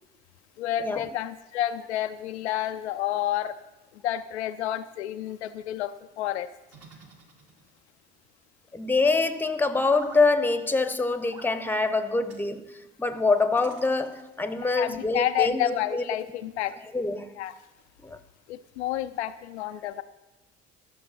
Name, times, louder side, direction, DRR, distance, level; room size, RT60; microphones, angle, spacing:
voice 1, 0.6-3.6 3.9-6.5 14.6-16.8 17.4-17.5 18.5-20.0, left 12 dB, 75° left, 0.5 m, -30 dB
sound 1, 6.7-7.9 9.8-10.3 11.3-11.6 12.3-12.5 13.6-14.4, right 3 dB, 45° right, 1.9 m, -48 dB
voice 2, 8.7-16.0 16.9-17.3 18.0-18.2, left 3 dB, 5° left, 0.8 m, -25 dB
13.0 x 6.5 x 5.6 m
figure-of-eight pair, 50°, 34 cm